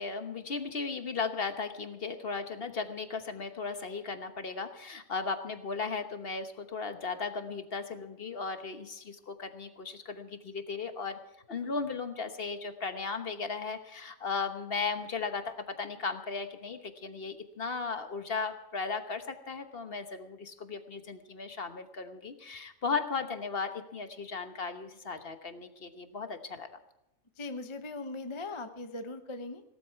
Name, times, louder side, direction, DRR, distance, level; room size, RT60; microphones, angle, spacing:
voice 1, 0.0-11.2 11.5-26.8, left 4 dB, 45° left, 8 dB, 1.3 m, -36 dB
voice 2, 27.4-29.6, left 2 dB, 25° left, 7 dB, 0.8 m, -39 dB
17.5 x 13.0 x 4.6 m, 0.89 s
omnidirectional pair, 1.4 m